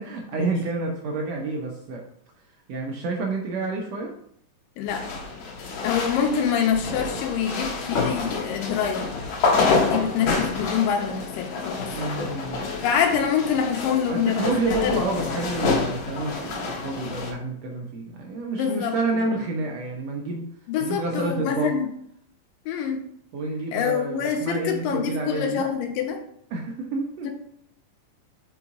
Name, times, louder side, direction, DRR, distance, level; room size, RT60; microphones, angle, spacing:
voice 1, 0.0-2.0 2.7-4.1 11.9-12.6 14.0-20.5 20.8-21.7 23.3-25.6 26.5-27.3, right 2 dB, 75° right, 0 dB, 1.5 m, -29 dB
sound 1, 4.9-17.3, left 4 dB, 65° left, 2.0 m, -28 dB
voice 2, 5.8-9.1 9.8-12.1 12.8-15.3 18.5-19.2 20.7-21.9 22.7-23.0 23.7-26.2 27.2-27.3, left 7 dB, 85° left, 3 dB, 2.6 m, -26 dB
5.7 x 4.0 x 4.7 m, 0.67 s
omnidirectional pair, 3.9 m